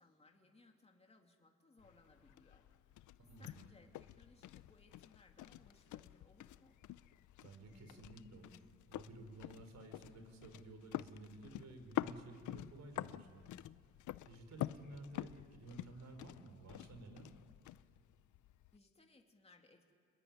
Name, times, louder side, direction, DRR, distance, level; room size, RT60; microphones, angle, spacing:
voice 1, 0.0-3.0 3.4-6.8 18.7-19.9, left 2 dB, 20° left, 2 dB, 2.8 m, -66 dB
sound 1, 1.8-18.8, left 14 dB, 75° left, 0.7 m, -48 dB
voice 2, 3.3-3.6 7.4-13.5 14.3-17.3, right 2 dB, 65° right, 7 dB, 4.9 m, -54 dB
29.5 x 21.5 x 9.6 m, 2.1 s
cardioid pair, 90°, 30 cm